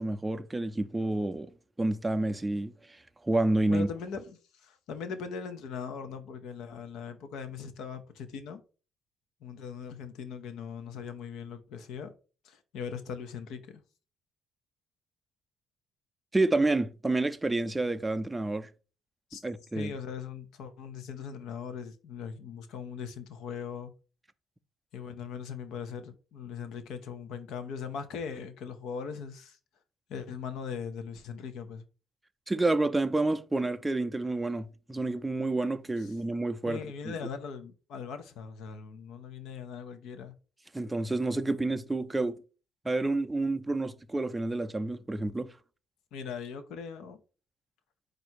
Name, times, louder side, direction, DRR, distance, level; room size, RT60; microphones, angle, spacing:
voice 1, 0.0-1.5 1.8-2.7 3.2-3.9 16.3-18.7 19.4-19.9 32.5-37.1 40.7-42.4 42.8-45.5, right 2 dB, 15° right, 0.4 m, -29 dB
voice 2, 3.7-8.6 9.4-12.1 12.4-13.8 19.3-19.4 19.7-23.9 24.9-29.6 30.1-31.8 36.0-36.1 36.6-40.3 46.1-47.2, left 6 dB, 80° left, 0.7 m, -40 dB
4.5 x 2.6 x 4.4 m
cardioid pair, 85°, 0 cm